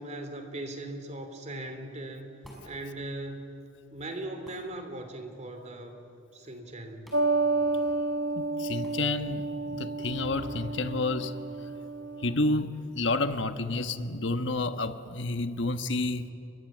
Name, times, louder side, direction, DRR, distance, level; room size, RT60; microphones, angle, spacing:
voice 1, 0.0-2.3 2.6-3.6 3.9-7.1, right 1 dB, 35° right, 3.2 m, -39 dB
sound 1, 2.4-2.7 4.4-4.7 7.0-7.3 7.6-7.7 8.8-9.0, equal, ahead, 5.9 m, -51 dB
sound 2, 7.1-12.3, right 3 dB, 60° right, 1.0 m, -30 dB
voice 2, 8.3-11.7 12.2-16.3, left 2 dB, 60° left, 1.3 m, -30 dB
30.0 x 24.0 x 7.5 m
head